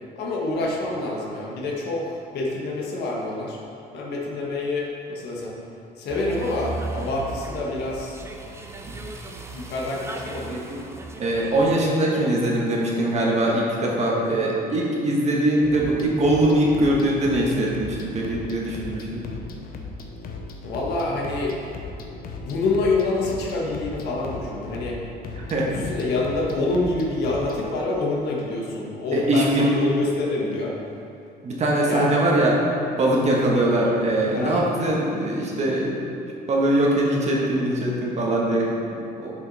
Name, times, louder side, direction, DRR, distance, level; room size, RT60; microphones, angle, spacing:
voice 1, 0.1-3.6 3.9-5.5 6.0-8.2 9.5-10.6 14.1-14.4 20.6-21.6 22.4-25.0 25.6-30.7 31.9-32.1 34.3-34.7, left 2 dB, 75° left, -3 dB, 1.4 m, -27 dB
sound 1, 6.1-11.8, right 1 dB, 15° right, 0.7 m, -36 dB
voice 2, 11.2-19.2 25.4-25.7 29.1-29.7 31.4-32.5 33.0-36.0 36.5-39.3, right 1 dB, 40° right, -3 dB, 1.5 m, -22 dB
sound 2, 15.6-27.6, left 3 dB, 60° left, 0.8 m, -38 dB
7.2 x 5.5 x 4.2 m, 2.7 s
cardioid pair, 110°, 17 cm